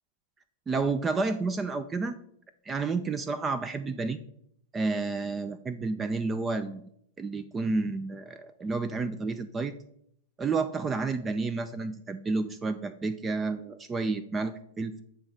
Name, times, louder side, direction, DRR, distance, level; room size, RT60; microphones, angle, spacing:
voice 1, 0.7-2.1 2.7-4.2 4.7-6.8 7.2-9.7 10.4-15.0, right 3 dB, 20° right, 12 dB, 0.4 m, -30 dB
8.8 x 3.1 x 5.1 m, 0.71 s
hypercardioid pair, 110°, 0 cm